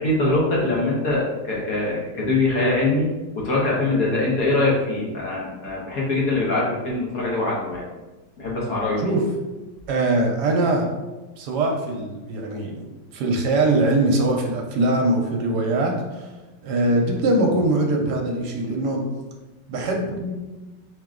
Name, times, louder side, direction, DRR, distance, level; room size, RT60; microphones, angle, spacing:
voice 1, 0.0-3.1 3.3-7.8 8.4-9.0, left 2 dB, 55° left, -5 dB, 1.5 m, -23 dB
voice 2, 9.9-10.9 11.4-16.3 16.6-19.1 19.7-20.3, right 2 dB, 70° right, 2 dB, 1.2 m, -22 dB
4.9 x 2.8 x 3.7 m, 1.1 s
omnidirectional pair, 1.9 m